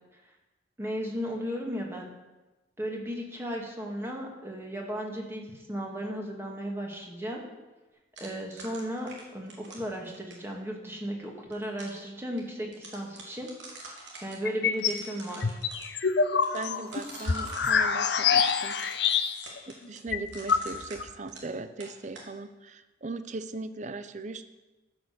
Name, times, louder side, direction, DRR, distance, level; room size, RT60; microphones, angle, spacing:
voice 1, 0.8-2.1 2.8-7.4 8.2-13.5 14.2-15.6, equal, 15° right, 0 dB, 2.0 m, -35 dB
sound 1, 8.2-10.5 11.3-12.0 12.4-12.5 12.7-14.4 14.7-15.9 16.4-17.7 18.4-21.5 21.8-22.3, right 3 dB, 75° right, 3.1 m, -46 dB
sound 2, 14.5-15.0 15.4-19.6 19.9-20.0 20.1-21.1, left 6 dB, 60° left, 0.7 m, -26 dB
voice 2, 16.5-18.8 19.7-24.4, right 3 dB, 40° right, 11 dB, 0.6 m, -39 dB
14.0 x 6.4 x 6.9 m, 1.1 s
head